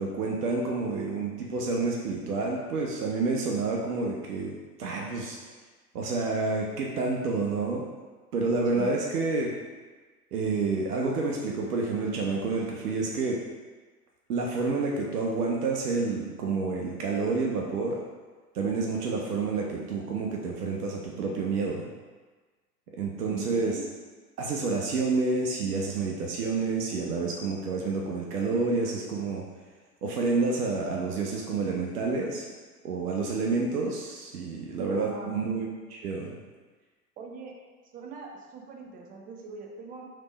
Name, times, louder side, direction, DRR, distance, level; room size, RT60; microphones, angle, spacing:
voice 1, 0.0-5.4 5.9-7.8 8.3-9.5 10.3-13.4 14.3-18.0 18.5-21.9 22.9-23.8 24.4-29.4 30.0-32.5 32.8-36.4, right 3 dB, 70° right, -1 dB, 0.7 m, -29 dB
voice 2, 23.3-23.8 35.0-35.3 37.2-37.5 37.9-40.1, right 4 dB, 20° right, 0 dB, 0.4 m, -41 dB
3.4 x 3.2 x 3.9 m, 1.4 s
figure-of-eight pair, 90°, 47 cm